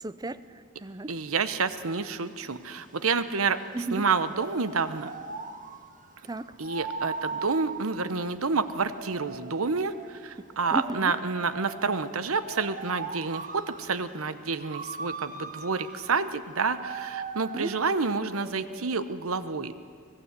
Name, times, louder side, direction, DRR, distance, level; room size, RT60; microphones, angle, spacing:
voice 1, 0.0-1.1 3.7-4.1 6.2-6.5 10.4-11.1 17.5-17.7, right 2 dB, 20° right, 15 dB, 0.5 m, -35 dB
voice 2, 1.1-5.1 6.6-19.8, right 4 dB, 85° right, 13 dB, 1.0 m, -29 dB
sound 1, 1.2-19.2, right 4 dB, 40° right, 1.5 m, -41 dB
24.5 x 18.5 x 8.2 m, 2.3 s
head